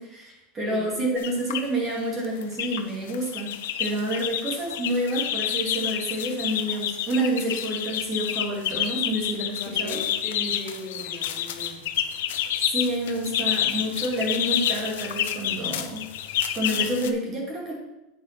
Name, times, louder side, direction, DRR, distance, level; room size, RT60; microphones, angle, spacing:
voice 1, 0.0-10.0 12.7-16.1 16.5-17.7, right 1 dB, 25° right, -2 dB, 2.5 m, -28 dB
sound 1, 1.2-1.7 2.2-2.8 3.1-17.1, left 10 dB, 85° left, 0.7 m, -29 dB
voice 2, 9.6-11.9, left 1 dB, 40° left, -1 dB, 3.3 m, -37 dB
8.8 x 5.1 x 6.0 m, 0.95 s
supercardioid pair, 145°, 0 cm